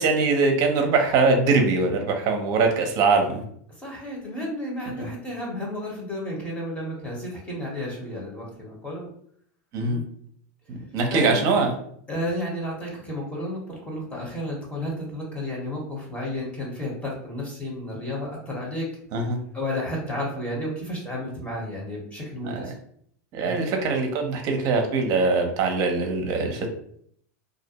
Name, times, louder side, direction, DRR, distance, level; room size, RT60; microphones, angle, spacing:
voice 1, 0.0-3.4 5.0-5.1 9.7-10.0 10.7-11.7 19.1-19.4 22.4-22.6 23.3-26.7, right 3 dB, 45° right, 3 dB, 0.6 m, -22 dB
voice 2, 3.8-9.1 9.8-10.0 11.1-11.6 12.1-18.9 19.5-22.7 23.4-23.6, left 1 dB, 15° left, -2 dB, 0.9 m, -32 dB
2.4 x 2.1 x 2.8 m, 0.64 s
supercardioid pair, 125°, 8 cm